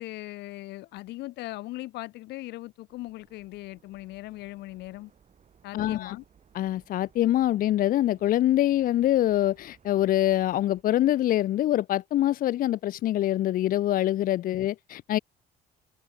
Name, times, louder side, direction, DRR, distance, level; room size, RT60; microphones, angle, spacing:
voice 1, 0.0-5.1 5.6-6.2, left 18 dB, 85° left, 3.2 m, -39 dB
sound 1, 2.9-10.8, right 7 dB, 40° right, 5.9 m, -61 dB
voice 2, 5.7-6.2 6.5-15.2, left 13 dB, 55° left, 0.6 m, -24 dB
cardioid pair, 110°, 17 cm